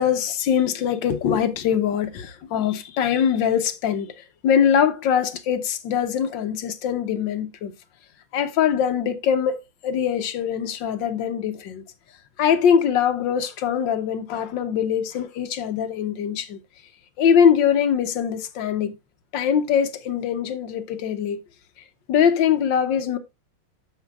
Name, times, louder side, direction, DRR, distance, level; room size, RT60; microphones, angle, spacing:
voice 1, 0.0-7.7 8.3-9.6 9.8-11.8 12.4-16.6 17.2-19.0 19.3-21.4 22.1-23.2, left 8 dB, 75° left, 1.4 m, -22 dB
14.0 x 5.3 x 2.3 m
omnidirectional pair, 2.1 m